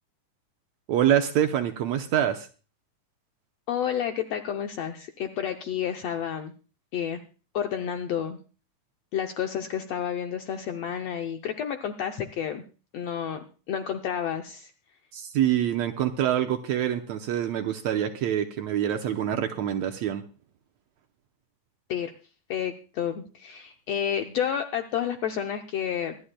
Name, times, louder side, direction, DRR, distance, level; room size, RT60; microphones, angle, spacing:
voice 1, 0.9-2.5 15.1-20.2, right 10 dB, 70° right, 5 dB, 1.8 m, -25 dB
voice 2, 3.7-6.5 6.9-7.2 7.5-8.4 9.1-12.6 12.9-14.7 21.9-22.1 22.5-26.2, left 9 dB, 75° left, 5 dB, 1.5 m, -30 dB
24.5 x 11.0 x 2.2 m, 0.35 s
omnidirectional pair, 3.7 m